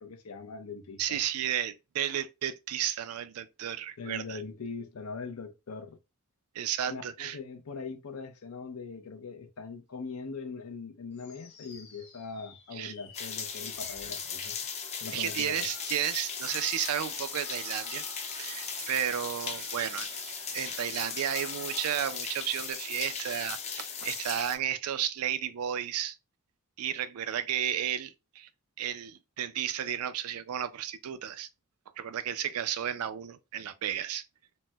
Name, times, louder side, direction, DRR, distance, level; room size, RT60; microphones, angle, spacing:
voice 1, 0.0-1.2 4.0-6.0 6.9-14.6 15.0-15.7, left 4 dB, 80° left, 0.6 m, -41 dB
voice 2, 1.0-4.4 6.6-7.4 12.7-12.9 15.1-18.0 18.4-20.1 20.5-26.2 26.8-28.5 28.8-31.5 32.0-34.2, right 10 dB, 90° right, 0.4 m, -33 dB
sound 1, 11.1-22.4, left 2 dB, 50° left, 1.2 m, -55 dB
sound 2, 13.1-24.6, left 6 dB, 30° left, 0.4 m, -38 dB
sound 3, 14.8-22.7, right 6 dB, 35° right, 0.5 m, -47 dB
4.0 x 2.1 x 2.2 m
head